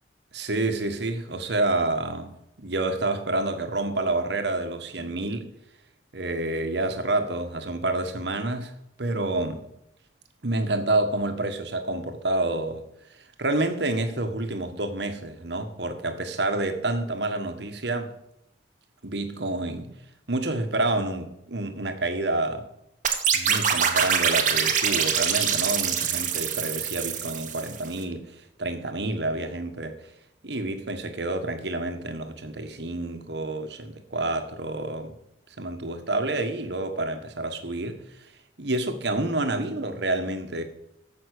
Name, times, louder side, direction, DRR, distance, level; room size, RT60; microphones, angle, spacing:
voice 1, 0.3-5.5 6.1-8.7 9.0-9.7 10.4-12.8 13.1-18.1 19.0-19.9 20.3-22.7 23.3-30.0 30.4-35.1 35.5-38.3 38.6-40.6, right 2 dB, 65° right, 1.5 m, -28 dB
sound 1, 23.0-27.9, right 7 dB, 45° right, 1.4 m, -24 dB
14.5 x 6.0 x 6.7 m
head